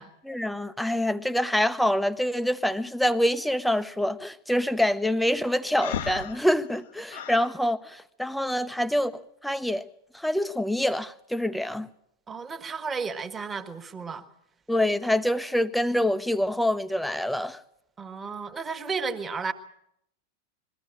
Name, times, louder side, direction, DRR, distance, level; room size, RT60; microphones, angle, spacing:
voice 1, 0.3-9.1 9.4-9.8 10.1-11.9 14.7-17.6, left 1 dB, ahead, 0.8 m, -26 dB
Breathing, 5.8-7.5, left 9 dB, 55° left, 1.0 m, -35 dB
voice 2, 12.3-14.3 18.0-19.5, right 5 dB, 15° right, 1.5 m, -33 dB
22.0 x 15.0 x 8.9 m
figure-of-eight pair, 90°, 0 cm